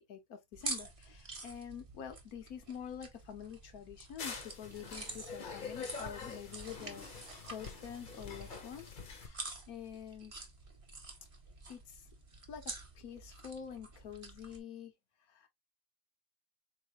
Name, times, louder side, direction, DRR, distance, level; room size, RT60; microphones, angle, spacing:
voice 1, 0.0-10.3 11.7-12.1 12.5-14.9 15.3-15.5, left 8 dB, 80° left, 1.4 m, -47 dB
sound 1, 0.5-14.6, right 3 dB, 30° right, 0.8 m, -48 dB
sound 2, 4.2-9.3, left 5 dB, 40° left, 0.8 m, -45 dB
4.0 x 3.3 x 2.8 m
omnidirectional pair, 1.5 m